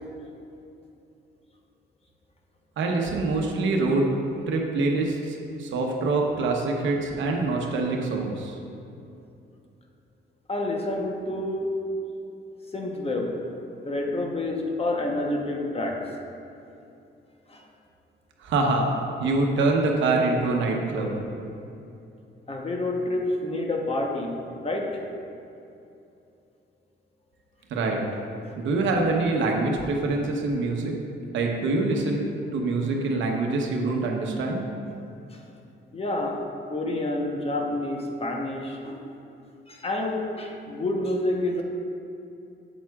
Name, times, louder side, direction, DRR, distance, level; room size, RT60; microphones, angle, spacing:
voice 1, 2.8-4.1 4.5-8.6 18.4-18.9 19.2-21.1 27.7-28.0 28.6-31.0 31.3-34.7, right 3 dB, 75° right, 1 dB, 1.0 m, -25 dB
voice 2, 10.5-11.7 12.7-13.3 13.8-16.0 17.5-17.6 22.5-24.4 24.6-25.0 28.4-28.5 35.3-35.4 35.9-39.0 39.7-41.6, left 2 dB, 30° left, 1 dB, 1.0 m, -28 dB
8.2 x 7.4 x 2.4 m, 2.7 s
cardioid pair, 90°, 20 cm